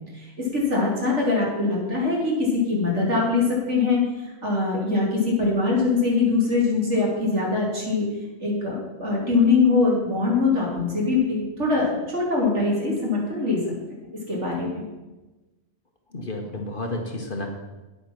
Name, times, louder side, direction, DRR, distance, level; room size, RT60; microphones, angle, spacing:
voice 1, 0.1-8.1 8.4-13.6 14.3-14.8, left 3 dB, 60° right, -4 dB, 3.4 m, -23 dB
voice 2, 16.1-17.5, left 1 dB, 40° left, 2 dB, 1.2 m, -31 dB
9.5 x 8.4 x 5.9 m, 1.1 s
omnidirectional pair, 1.4 m